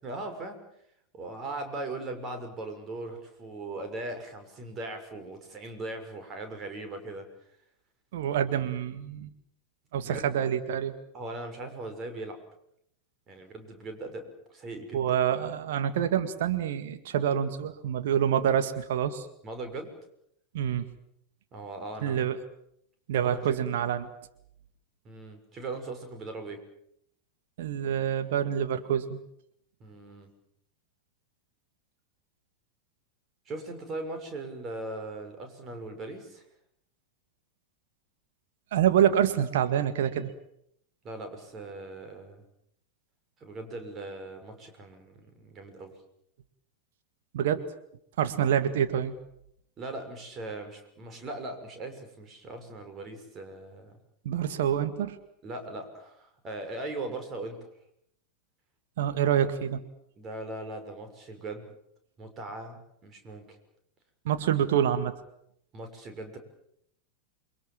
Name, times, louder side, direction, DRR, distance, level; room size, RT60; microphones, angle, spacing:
voice 1, 0.0-0.6 1.1-7.3 10.0-10.2 11.1-12.4 13.3-15.0 19.4-19.9 21.5-22.3 23.2-23.6 25.0-26.6 29.8-30.3 33.5-36.5 41.0-42.4 43.4-45.9 49.8-54.0 55.4-57.7 60.2-61.7 62.2-63.6 65.7-66.4, right 2 dB, 25° right, 6 dB, 6.1 m, -39 dB
voice 2, 8.1-9.3 9.9-10.9 14.9-19.2 20.5-20.9 22.0-22.4 23.1-24.1 27.6-29.2 38.7-40.3 47.3-47.6 48.2-49.1 54.2-55.2 59.0-59.8 64.2-65.1, right 9 dB, 55° right, 9 dB, 1.9 m, -26 dB
28.5 x 23.0 x 7.4 m, 0.75 s
figure-of-eight pair, 90°, 0 cm